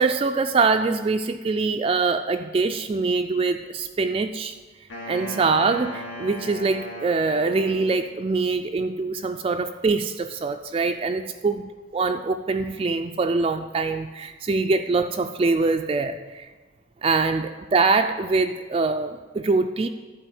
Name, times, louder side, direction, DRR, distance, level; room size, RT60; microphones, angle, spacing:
voice 1, 0.0-4.6 5.1-16.5 17.0-19.9, right 4 dB, 30° right, 7 dB, 0.3 m, -24 dB
Wind instrument woodwind instrument, 4.9-8.4, equal, 75° left, 2.2 m, -37 dB
11.0 x 4.6 x 7.6 m, 1.3 s
head